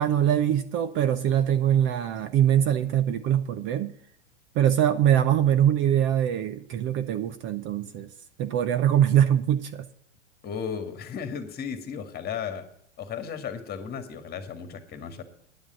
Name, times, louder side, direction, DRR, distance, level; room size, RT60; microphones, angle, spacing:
voice 1, 0.0-3.9 4.5-8.1 8.4-9.9, right 10 dB, 35° right, 11 dB, 0.7 m, -23 dB
voice 2, 10.4-12.7 13.0-15.2, left 7 dB, 25° left, 9 dB, 1.9 m, -35 dB
10.5 x 7.3 x 8.8 m, 0.66 s
hypercardioid pair, 105°, 35 cm